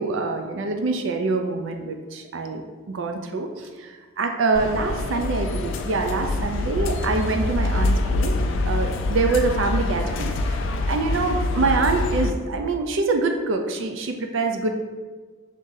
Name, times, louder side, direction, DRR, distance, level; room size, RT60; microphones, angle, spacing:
voice 1, 0.0-2.6 2.9-8.3 8.7-10.6 10.9-14.7, right 3 dB, 65° right, 4 dB, 0.4 m, -25 dB
sound 1, 4.5-12.3, left 2 dB, 65° left, 0.4 m, -25 dB
5.5 x 3.6 x 2.6 m, 1.4 s
head